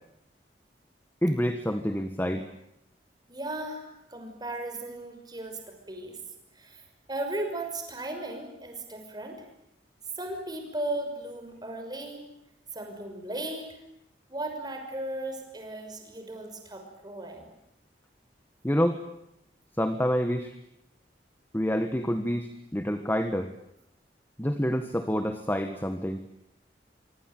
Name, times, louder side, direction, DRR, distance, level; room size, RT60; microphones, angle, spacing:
voice 1, 1.2-2.5 18.6-19.0 19.8-20.5 21.5-23.5 24.4-26.2, equal, 10° left, 8 dB, 1.5 m, -27 dB
voice 2, 3.3-5.6 5.9-6.2 6.6-6.8 7.1-9.4 10.2-12.2 12.7-13.8 14.3-17.5, right 1 dB, 25° right, 4 dB, 6.1 m, -36 dB
25.5 x 25.0 x 9.2 m, 0.80 s
head